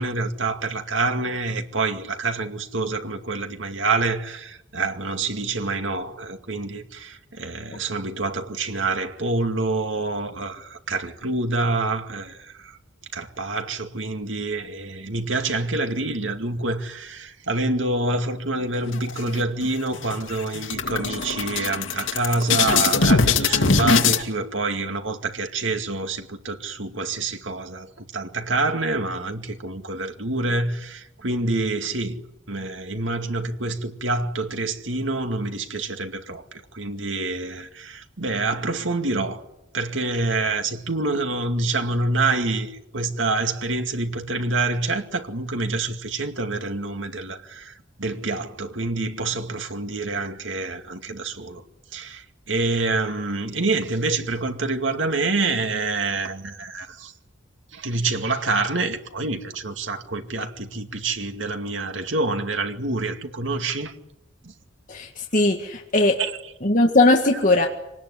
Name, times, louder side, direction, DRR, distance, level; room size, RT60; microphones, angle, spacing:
voice 1, 0.0-12.7 13.1-32.2 32.5-39.4 39.7-51.6 51.9-57.1 57.7-63.9 64.4-64.5 66.2-66.3, right 3 dB, 80° right, 2.3 m, -27 dB
sound 1, 18.9-19.7 20.0-20.2 20.5-24.2, left 4 dB, 90° left, 2.3 m, -21 dB
voice 2, 64.9-66.2 66.6-67.7, left 2 dB, 40° left, 2.0 m, -19 dB
25.0 x 19.5 x 9.9 m
head